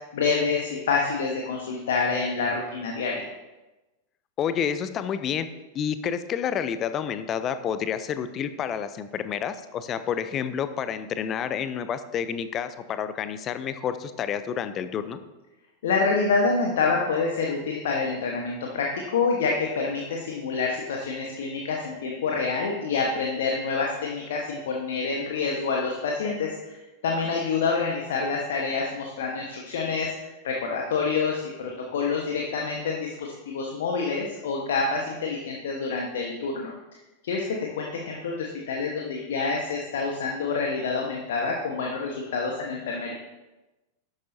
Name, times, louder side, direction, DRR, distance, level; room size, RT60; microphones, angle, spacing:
voice 1, 0.1-3.3 15.8-36.7 37.2-43.1, left 4 dB, 60° left, 0 dB, 1.3 m, -27 dB
voice 2, 4.4-5.5 5.7-15.2, left 8 dB, 30° left, 11 dB, 0.6 m, -29 dB
12.5 x 9.1 x 2.8 m, 1.1 s
figure-of-eight pair, 90°, 0 cm